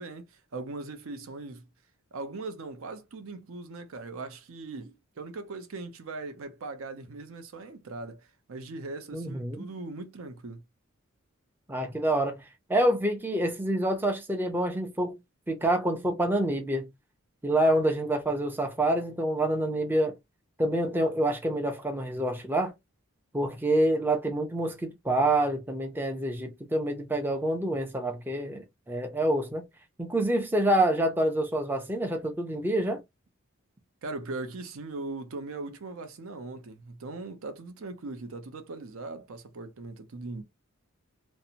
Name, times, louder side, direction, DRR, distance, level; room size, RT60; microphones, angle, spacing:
voice 1, 0.0-1.6 2.1-10.6 34.0-40.4, right 3 dB, 75° right, 0.6 m, -40 dB
voice 2, 9.1-9.7 11.7-12.4 12.7-15.2 15.5-16.9 17.4-20.2 20.6-22.7 23.3-29.6 30.0-33.0, right 1 dB, 10° right, 0.4 m, -27 dB
2.6 x 2.0 x 2.7 m
head